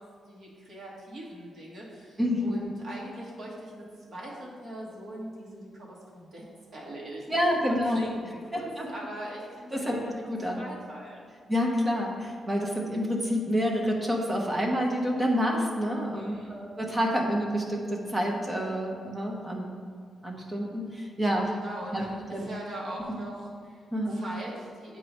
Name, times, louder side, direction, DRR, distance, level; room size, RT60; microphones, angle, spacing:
voice 1, 0.0-6.4 6.7-10.2 10.6-11.2 16.1-16.5 21.4-25.0, right 1 dB, 40° right, -5 dB, 1.5 m, -41 dB
voice 2, 2.2-2.7 7.3-8.0 8.5-8.9 9.7-10.0 10.3-10.6 11.5-19.8 20.2-21.5 21.9-22.0 22.3-22.5 23.1-23.2 23.9-24.2, equal, 10° right, -1 dB, 0.9 m, -28 dB
8.1 x 3.1 x 5.2 m, 2.1 s
wide cardioid pair, 160°, 0 cm